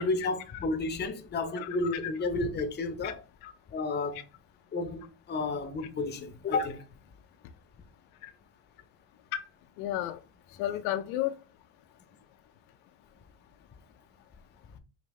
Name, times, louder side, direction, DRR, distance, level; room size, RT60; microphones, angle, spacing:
voice 1, 0.0-3.2 3.7-4.2 4.7-6.8, left 3 dB, 20° left, 0.6 m, -31 dB
voice 2, 1.6-2.0 3.0-3.1 3.4-3.5 8.2-8.3 9.8-10.2 10.6-11.3, left 13 dB, 90° left, 0.7 m, -32 dB
5.1 x 2.6 x 3.1 m
cardioid pair, 115°, 49 cm